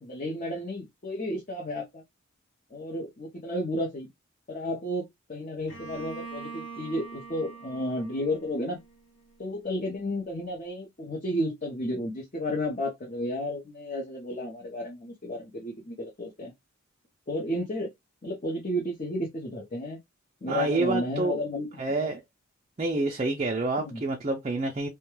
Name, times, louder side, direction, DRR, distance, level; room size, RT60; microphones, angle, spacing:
voice 1, 0.0-2.0 2.7-4.1 4.5-8.8 9.4-16.5 17.3-17.9 18.2-20.0 20.4-22.1 23.8-24.0, left 1 dB, 35° left, 0.6 m, -32 dB
Bowed string instrument, 5.7-9.4, right 4 dB, 75° left, 1.1 m, -43 dB
voice 2, 20.5-21.4 21.8-22.2 22.8-24.9, right 2 dB, 30° right, 0.4 m, -28 dB
2.2 x 2.2 x 3.0 m
head